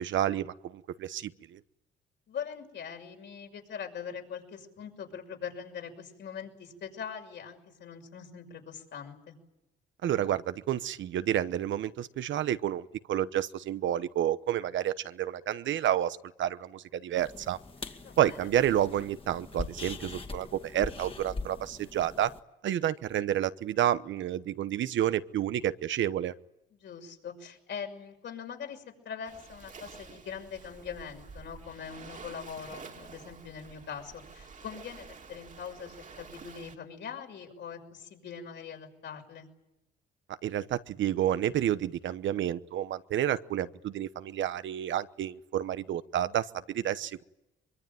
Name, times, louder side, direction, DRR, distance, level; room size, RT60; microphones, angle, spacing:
voice 1, 0.0-1.6 10.0-17.6 18.2-22.3 22.6-26.3 40.4-47.2, right 11 dB, 70° right, 13 dB, 1.0 m, -30 dB
voice 2, 2.3-9.4 18.0-18.5 26.7-39.5, left 7 dB, 65° left, 3 dB, 6.3 m, -42 dB
sound 1, 17.2-22.4, left 3 dB, 25° left, 2.3 m, -42 dB
Waves surf, 29.2-36.8, right 5 dB, 40° right, 2.5 m, -49 dB
24.0 x 23.0 x 9.2 m, 0.93 s
cardioid pair, 90°, 20 cm